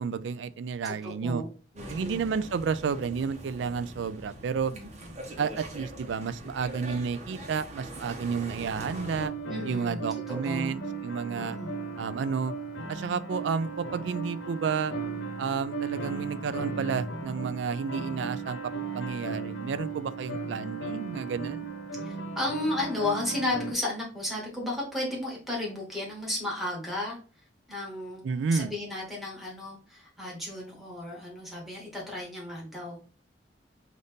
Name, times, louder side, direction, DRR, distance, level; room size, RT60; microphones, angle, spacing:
voice 1, 0.0-1.4 1.9-4.7 5.4-9.3 9.6-11.6 12.0-12.5 12.9-14.9 15.4-18.6 18.9-21.7 28.2-28.7, right 5 dB, 75° right, 0.4 m, -31 dB
voice 2, 0.8-1.5 1.7-2.2 4.7-4.9 9.5-10.0 10.3-10.7 11.2-11.7 22.0-27.2 27.7-28.2 28.5-33.0, left 2 dB, ahead, 1.6 m, -33 dB
sound 1, 1.8-9.3, right 1 dB, 40° right, 0.9 m, -43 dB
sound 2, 8.8-23.7, right 4 dB, 80° left, 1.0 m, -36 dB
4.0 x 2.6 x 3.4 m
head